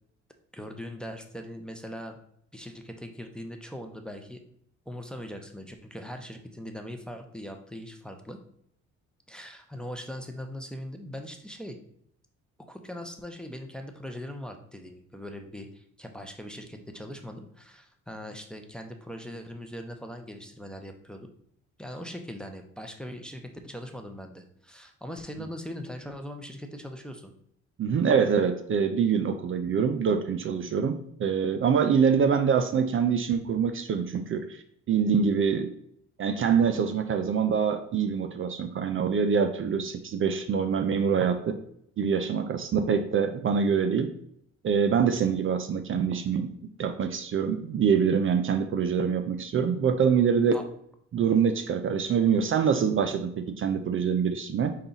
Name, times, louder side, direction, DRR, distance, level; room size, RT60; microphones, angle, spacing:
voice 1, 0.5-2.2 2.5-4.4 4.9-8.4 9.3-11.8 12.7-21.3 21.8-27.3 50.5-50.7, equal, 5° left, 4 dB, 0.6 m, -40 dB
voice 2, 27.8-35.7 36.2-41.6 42.0-44.1 44.6-46.5 46.8-50.6 51.1-54.8, right 6 dB, 45° right, 8 dB, 0.4 m, -25 dB
5.5 x 2.3 x 3.9 m, 0.70 s
cardioid pair, 90°, 30 cm